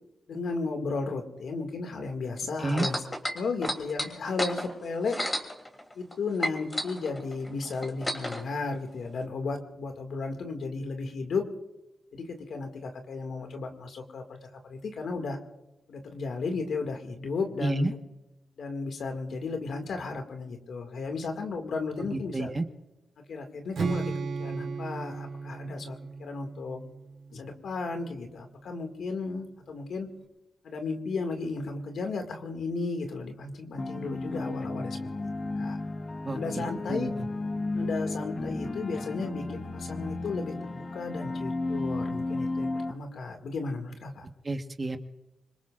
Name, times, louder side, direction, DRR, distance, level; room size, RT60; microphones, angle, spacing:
voice 1, 0.3-3.0 3.3-5.2 6.0-11.5 12.1-15.4 15.9-18.0 18.6-22.5 23.3-24.1 24.4-26.8 27.3-30.1 30.6-35.8 36.3-37.1 37.7-44.3, left 4 dB, 80° left, 5 dB, 2.1 m, -34 dB
sound 1, 2.7-6.1 6.4-8.4 9.2-9.3, left 1 dB, 20° left, 3.0 m, -32 dB
voice 2, 17.6-17.9 22.1-22.6 36.3-37.1 44.4-45.0, right 2 dB, 35° right, 7 dB, 1.3 m, -30 dB
Strum, 23.7-27.9, right 4 dB, 80° right, 3.3 m, -35 dB
sound 2, 33.8-42.9, left 2 dB, 40° left, 1.0 m, -33 dB
25.5 x 22.0 x 2.5 m, 0.95 s
cardioid pair, 65°, 0 cm